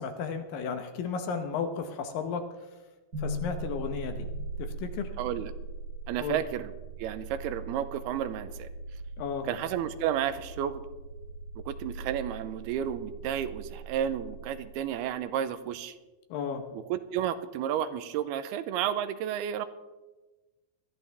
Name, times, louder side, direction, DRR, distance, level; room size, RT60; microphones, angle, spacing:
voice 1, 0.0-2.5 3.2-4.3 4.6-5.1 6.2-6.4 9.2-9.5 16.3-16.6, left 6 dB, 70° left, 7 dB, 2.4 m, -33 dB
sound 1, 3.1-15.2, right 2 dB, 25° right, 4.3 m, -40 dB
voice 2, 5.2-5.5 6.1-6.7 7.0-8.7 9.4-10.8 11.6-16.0 16.7-19.7, right 10 dB, 90° right, 12 dB, 2.7 m, -32 dB
20.5 x 13.5 x 3.4 m, 1.2 s
omnidirectional pair, 4.6 m